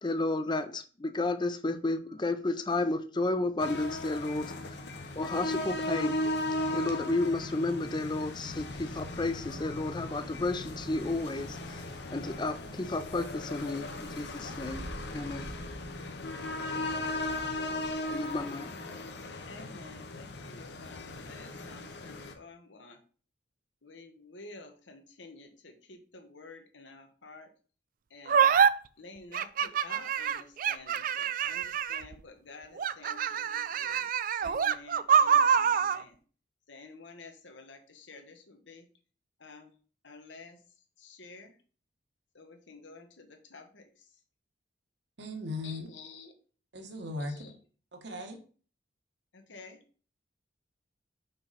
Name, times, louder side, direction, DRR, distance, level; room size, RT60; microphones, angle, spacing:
voice 1, 0.0-4.5 5.2-6.2 6.7-11.8 12.1-14.8 15.1-15.5 18.1-18.7, left 2 dB, 25° left, 0.5 m, -32 dB
sound 1, 3.6-22.3, left 1 dB, 65° left, 0.9 m, -37 dB
sound 2, 8.9-18.4, right 1 dB, 15° right, 0.8 m, -50 dB
voice 2, 19.5-23.0 23.8-27.5 28.1-28.5 29.0-34.1 34.4-36.2 36.7-38.9 39.4-39.7 40.0-40.6 41.0-41.6 42.3-44.1 45.6-46.3 47.2-47.5 49.3-49.8, left 3 dB, 80° left, 1.3 m, -51 dB
sound 3, 28.3-28.7 29.3-32.1 32.8-36.0, right 7 dB, 45° right, 0.3 m, -26 dB
voice 3, 45.2-45.9 46.7-47.4 47.9-48.4, left 2 dB, 65° right, 1.3 m, -38 dB
5.6 x 5.5 x 4.1 m
head